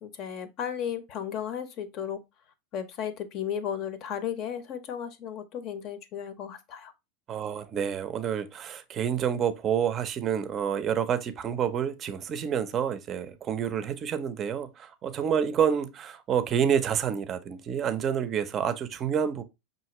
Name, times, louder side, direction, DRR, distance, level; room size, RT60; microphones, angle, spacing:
voice 1, 0.0-2.2 2.7-6.9, left 9 dB, 45° left, 0.7 m, -34 dB
voice 2, 7.3-19.4, right 8 dB, 30° right, 0.5 m, -28 dB
5.6 x 2.5 x 2.9 m
supercardioid pair, 125°, 0 cm